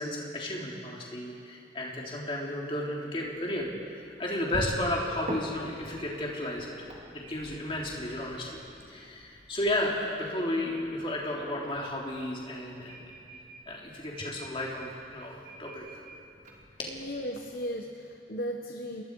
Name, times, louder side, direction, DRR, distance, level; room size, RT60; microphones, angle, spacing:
voice 1, 0.0-6.7 7.1-8.6 8.9-13.1 13.7-16.0 16.8-16.9, left 1 dB, 30° left, -3 dB, 3.5 m, -33 dB
sound 1, 3.2-17.6, equal, 45° right, 2.9 m, -45 dB
voice 2, 16.9-19.0, equal, 55° left, 1 dB, 1.2 m, -36 dB
28.5 x 20.5 x 4.8 m, 2.5 s
head